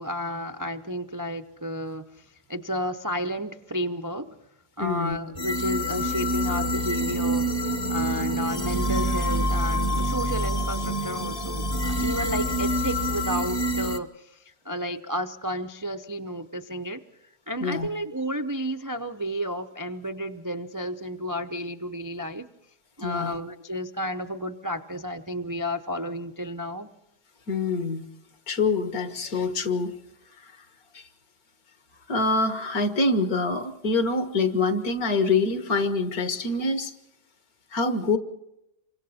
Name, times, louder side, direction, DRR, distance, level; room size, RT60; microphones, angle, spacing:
voice 1, 0.0-4.4 4.8-7.5 7.9-17.0 17.5-22.5 23.0-26.9, equal, 25° right, 6 dB, 0.4 m, -32 dB
voice 2, 4.8-5.2 17.6-17.9 23.0-23.4 27.5-28.1 28.5-29.9 30.9-31.0 32.1-36.9 37.7-38.2, left 3 dB, 60° left, 8 dB, 2.0 m, -25 dB
sound 1, 5.4-14.0, equal, 30° left, 0.8 m, -26 dB
28.0 x 25.0 x 4.2 m, 0.88 s
omnidirectional pair, 1.7 m